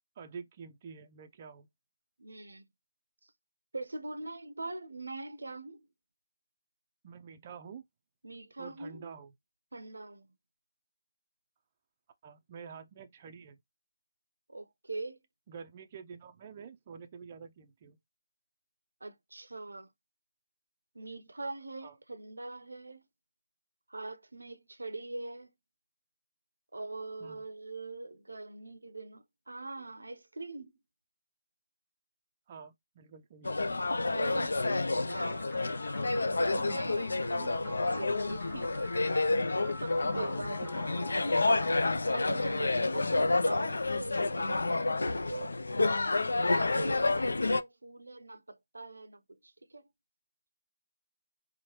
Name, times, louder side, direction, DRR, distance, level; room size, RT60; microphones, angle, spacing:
voice 1, 0.2-1.7 7.0-7.8 8.6-9.3 12.2-13.6 15.5-18.0 21.8-21.9 27.2-27.4 32.5-33.6 36.7-36.9 40.0-40.7, right 6 dB, 30° right, 0.4 m, -48 dB
voice 2, 2.2-2.6 3.2-3.3 3.7-5.9 8.2-9.1 9.7-10.3 14.5-15.2 19.0-19.9 20.9-23.0 23.9-25.5 26.7-30.7 34.1-34.6 35.0-35.5 35.8-35.9 36.3-38.8 39.6-41.5 41.8-49.8, right 2 dB, 85° right, 0.5 m, -42 dB
sound 1, 33.5-47.6, left 2 dB, 75° left, 0.3 m, -29 dB
sound 2, 35.1-43.1, left 3 dB, 15° left, 1.3 m, -48 dB
3.0 x 2.1 x 2.8 m
figure-of-eight pair, 155°, 0 cm